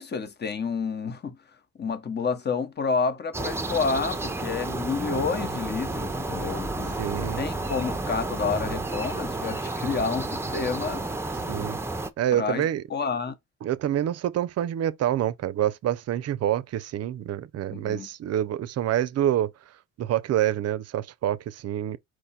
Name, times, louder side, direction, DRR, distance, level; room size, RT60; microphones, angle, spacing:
voice 1, 0.0-1.4 1.8-11.1 12.3-13.3 17.7-18.1, left 5 dB, 35° left, 0.9 m, -29 dB
sound 1, 3.3-12.1, right 2 dB, 10° right, 0.6 m, -31 dB
voice 2, 7.0-7.4 11.5-11.8 12.2-12.8 13.6-19.5 20.0-22.0, right 11 dB, 55° right, 0.5 m, -27 dB
4.8 x 2.3 x 4.1 m
cardioid pair, 90°, 30 cm